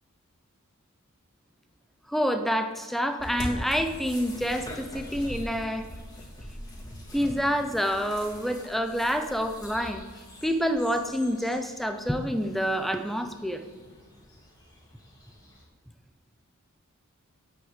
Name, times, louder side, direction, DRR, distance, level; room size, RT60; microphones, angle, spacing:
voice 1, 2.1-5.9 7.1-10.1 10.4-13.6, equal, ahead, 7 dB, 0.7 m, -27 dB
sound 1, 3.2-15.6, equal, 20° left, 3.2 m, -43 dB
8.4 x 7.9 x 8.2 m, 1.4 s
head